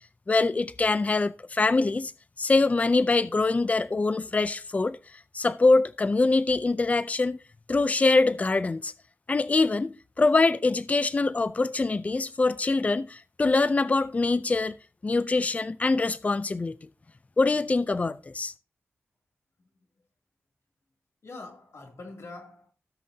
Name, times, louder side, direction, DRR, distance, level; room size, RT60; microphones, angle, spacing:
voice 1, 0.3-2.1 2.4-5.0 5.3-7.4 7.7-8.9 9.3-14.8 15.0-16.8 17.4-18.5, left 3 dB, 30° left, 0.4 m, -24 dB
voice 2, 21.2-22.7, left 3 dB, 75° left, 2.7 m, -44 dB
16.5 x 6.4 x 2.7 m
wide cardioid pair, 105°, 5 cm